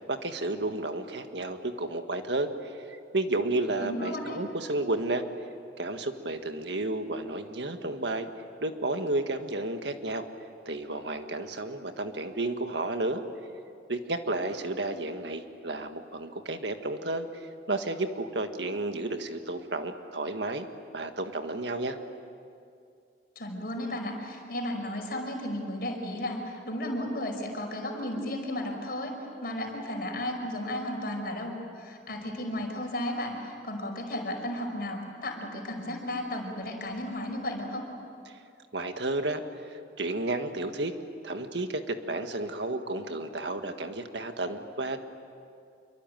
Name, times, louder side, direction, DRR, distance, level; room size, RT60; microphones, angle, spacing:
voice 1, 0.1-5.2 5.8-8.3 8.6-10.2 10.7-13.2 13.9-17.3 17.7-20.7 20.9-22.0 38.3-38.4 38.7-39.4 39.7-40.9 41.2-45.0, right 2 dB, 70° right, 7 dB, 1.7 m, -32 dB
voice 2, 3.8-4.4 23.4-37.9, left 1 dB, 55° left, 2 dB, 5.4 m, -34 dB
27.0 x 23.5 x 9.2 m, 2.4 s
head